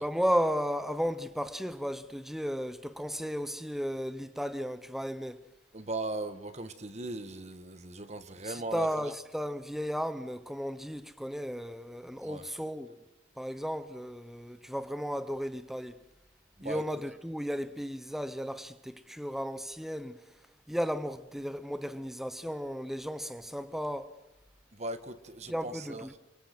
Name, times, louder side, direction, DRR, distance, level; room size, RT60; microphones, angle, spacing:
voice 1, 0.0-5.4 8.4-13.0 13.4-16.0 16.6-20.3 20.7-24.2 25.5-26.1, equal, ahead, 0.8 m, -34 dB
voice 2, 5.7-9.1 12.2-12.5 16.6-16.8 24.7-26.1, right 2 dB, 35° right, 1.6 m, -38 dB
29.5 x 23.0 x 6.1 m
head